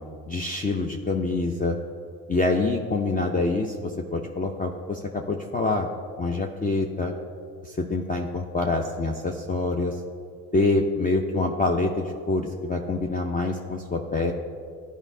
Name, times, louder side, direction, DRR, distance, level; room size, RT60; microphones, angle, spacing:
voice 1, 0.3-1.8 2.3-5.9 6.2-7.1 7.6-10.0 10.5-14.3, left 3 dB, 20° left, 2 dB, 0.6 m, -26 dB
12.0 x 5.0 x 2.7 m, 2.2 s
supercardioid pair, 65°, 41 cm